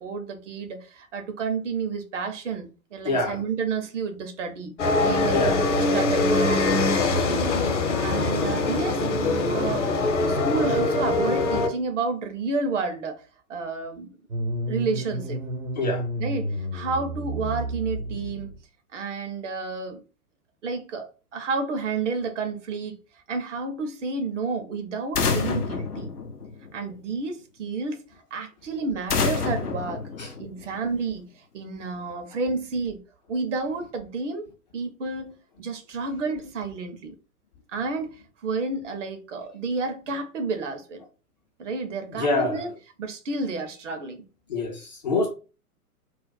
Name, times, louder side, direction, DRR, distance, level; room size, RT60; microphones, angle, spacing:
voice 1, 0.0-4.7 5.0-5.4 5.9-6.9 7.3-7.5 8.0-9.0 9.5-9.9 10.3-13.2 13.5-14.2 14.7-15.4 16.2-18.5 18.9-20.0 20.6-23.0 23.3-26.1 26.7-28.0 28.3-30.0 30.4-31.3 31.5-33.0 33.3-34.4 34.7-37.1 37.7-38.1 38.4-41.0 41.6-42.7 43.0-44.2, right 4 dB, 55° right, 0.7 m, -30 dB
voice 2, 3.0-3.4 5.3-5.7 15.8-16.0 30.2-30.3 42.1-42.6 44.5-45.3, left 2 dB, 30° left, 0.4 m, -25 dB
sound 1, 4.8-11.7, left 2 dB, 50° left, 0.8 m, -23 dB
sound 2, 14.3-18.6, right 1 dB, 75° right, 1.0 m, -31 dB
sound 3, 25.1-26.9 29.1-30.9, left 4 dB, 80° left, 0.6 m, -28 dB
2.4 x 2.0 x 3.9 m
figure-of-eight pair, 105°, 46 cm